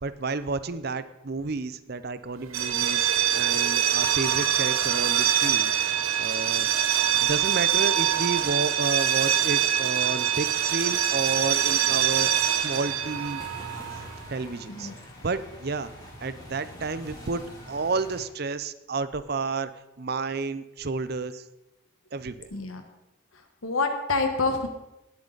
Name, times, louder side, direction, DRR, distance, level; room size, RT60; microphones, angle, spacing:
voice 1, 0.0-13.4 14.3-14.9 15.2-15.9 16.2-17.4 17.7-19.7 20.0-21.4 22.1-22.5, right 4 dB, 50° right, 14 dB, 0.6 m, -31 dB
sound 1, 2.5-14.2, right 10 dB, 90° right, 0.9 m, -24 dB
sound 2, 12.6-18.3, equal, 20° left, 3.0 m, -44 dB
voice 2, 22.5-22.8 23.6-24.7, left 3 dB, 85° left, 5 dB, 1.4 m, -27 dB
18.5 x 8.6 x 4.0 m, 0.93 s
head